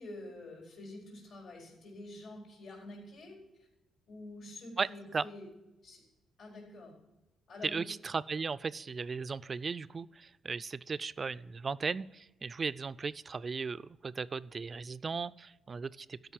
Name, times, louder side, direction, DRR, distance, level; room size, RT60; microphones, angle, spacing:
voice 1, 0.0-3.4 4.1-5.5 5.8-6.0 6.4-6.9 7.5-7.9, left 1 dB, 65° left, -3 dB, 4.3 m, -47 dB
voice 2, 7.6-16.3, right 5 dB, 35° right, 17 dB, 0.3 m, -36 dB
12.5 x 5.4 x 7.3 m, 1.0 s
cardioid pair, 90°, 0 cm